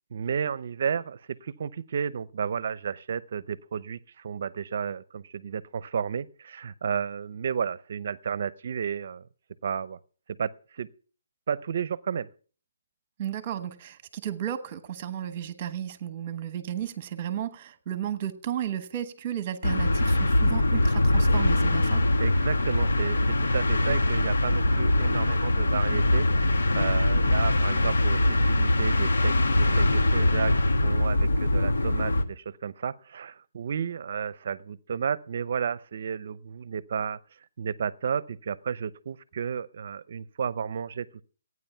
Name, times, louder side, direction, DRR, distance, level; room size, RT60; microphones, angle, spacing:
voice 1, 0.1-9.3 9.6-10.0 10.3-10.9 11.5-12.3 22.2-30.5 30.8-37.2 37.6-41.2, right 7 dB, 50° right, 0.7 m, -32 dB
voice 2, 13.2-22.0, right 10 dB, 25° right, 1.2 m, -33 dB
sound 1, 19.6-32.2, left 1 dB, 85° left, 1.4 m, -23 dB
14.5 x 9.6 x 5.7 m
hypercardioid pair, 170°, 0 cm